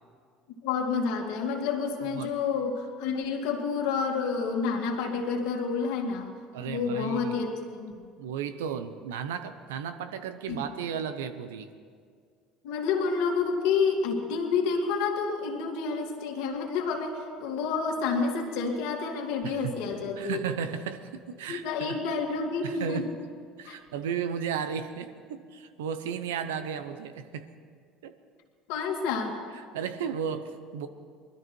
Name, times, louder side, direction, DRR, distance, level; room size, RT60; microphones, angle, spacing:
voice 1, 0.6-6.3 6.7-7.5 7.7-8.0 10.5-10.6 12.6-20.4 21.5-23.1 23.7-23.8 28.7-29.4, left 5 dB, 75° left, 1 dB, 2.2 m, -29 dB
voice 2, 6.5-7.3 8.2-11.7 19.4-19.7 20.2-22.2 22.6-23.1 23.6-27.5 28.0-28.1 29.5-30.9, right 7 dB, 90° right, 10 dB, 0.8 m, -34 dB
20.5 x 13.0 x 4.6 m, 2.1 s
supercardioid pair, 85°, 0 cm